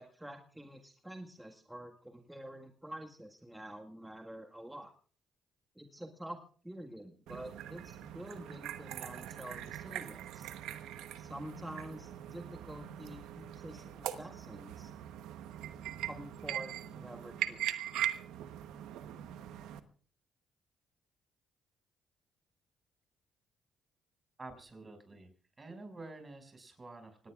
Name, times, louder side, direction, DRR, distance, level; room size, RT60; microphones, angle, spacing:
voice 1, 0.0-4.9 5.7-10.5 11.2-14.9 16.0-17.7, right 1 dB, 10° right, 3 dB, 1.7 m, -48 dB
sound 1, 7.3-19.8, right 11 dB, 85° right, 1.0 m, -41 dB
voice 2, 24.4-25.3 25.6-27.3, right 2 dB, 30° right, 6 dB, 5.9 m, -49 dB
25.0 x 18.5 x 2.4 m, 0.42 s
supercardioid pair, 60°, 0 cm